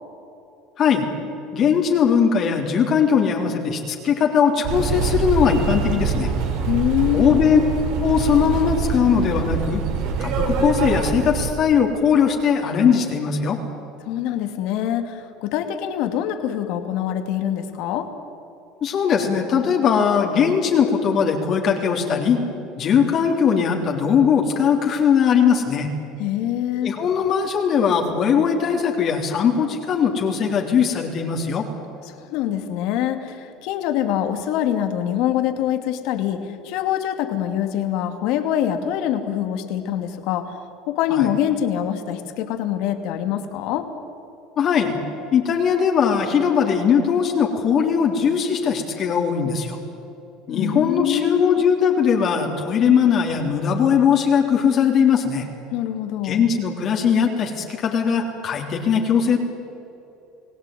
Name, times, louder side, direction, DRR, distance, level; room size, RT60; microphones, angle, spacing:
voice 1, 1.5-6.3 7.1-7.6 8.0-9.8 10.2-13.6 18.8-22.4 22.8-25.9 26.8-31.7 41.1-41.3 44.6-45.0 45.3-49.8 50.5-55.5 56.2-59.4, left 7 dB, 45° left, 1 dB, 3.5 m, -19 dB
sound 1, 4.6-11.5, right 5 dB, 70° right, 4.4 m, -24 dB
voice 2, 6.7-7.4 14.0-18.1 26.2-26.9 32.1-40.6 40.9-43.9 50.6-51.6 55.7-56.4, left 11 dB, 70° left, 8 dB, 2.6 m, -24 dB
30.0 x 18.0 x 9.3 m, 2.9 s
supercardioid pair, 115°, 0 cm